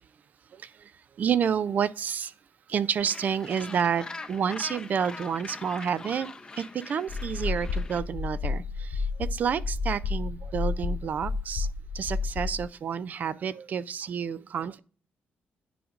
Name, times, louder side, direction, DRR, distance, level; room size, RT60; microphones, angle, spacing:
voice 1, 0.5-0.9 1.2-2.3 2.7-6.3 6.5-11.7 11.9-14.8, right 7 dB, 50° right, 0.4 m, -29 dB
Gull seagull, 3.0-8.0, left 3 dB, 20° left, 0.6 m, -42 dB
sound 1, 7.1-12.6, left 4 dB, 75° left, 0.7 m, -31 dB
9.9 x 5.0 x 2.4 m
cardioid pair, 135°, 4 cm